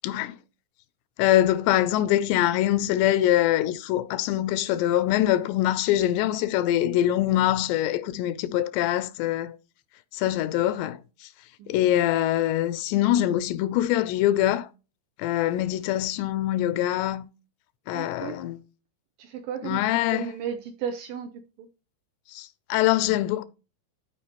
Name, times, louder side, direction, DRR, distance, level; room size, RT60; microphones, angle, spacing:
voice 1, 0.0-0.4 1.2-9.6 10.1-11.3 11.7-14.7 15.2-17.3 17.9-18.6 19.6-20.3 22.3-23.4, left 13 dB, 85° left, 2.9 m, -24 dB
voice 2, 17.9-18.4 19.2-21.3 21.6-21.7, right 8 dB, 75° right, 2.1 m, -34 dB
13.0 x 5.1 x 3.0 m
omnidirectional pair, 4.9 m